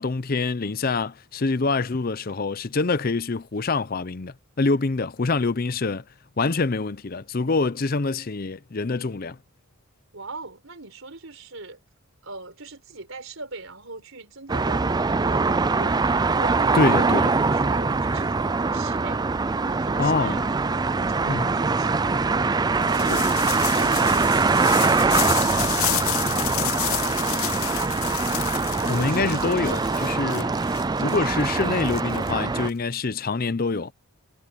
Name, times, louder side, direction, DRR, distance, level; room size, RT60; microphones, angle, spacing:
voice 1, 0.0-6.0 6.4-9.4 16.7-17.2 20.0-20.4 21.3-21.5 23.1-23.3 28.9-30.5 31.0-33.9, left 3 dB, 40° left, 0.6 m, -25 dB
voice 2, 10.1-11.8 12.2-19.3 19.6-20.6 21.0-28.0 28.8-30.1, right 3 dB, 65° right, 4.5 m, -41 dB
sound 1, 14.5-32.7, right 4 dB, 20° right, 0.3 m, -23 dB
sound 2, 22.8-32.7, left 15 dB, 75° left, 0.8 m, -31 dB
head